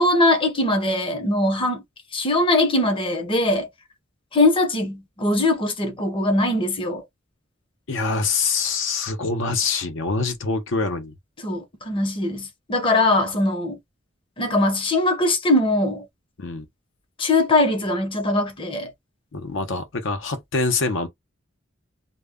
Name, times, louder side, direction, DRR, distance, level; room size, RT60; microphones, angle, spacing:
voice 1, 0.0-1.8 2.1-3.7 4.3-7.0 11.4-13.8 14.4-16.0 17.2-18.9, left 2 dB, 25° left, 0.7 m, -21 dB
voice 2, 7.9-11.1 16.4-16.6 19.3-21.1, left 4 dB, 70° left, 0.7 m, -25 dB
2.1 x 2.1 x 3.4 m
head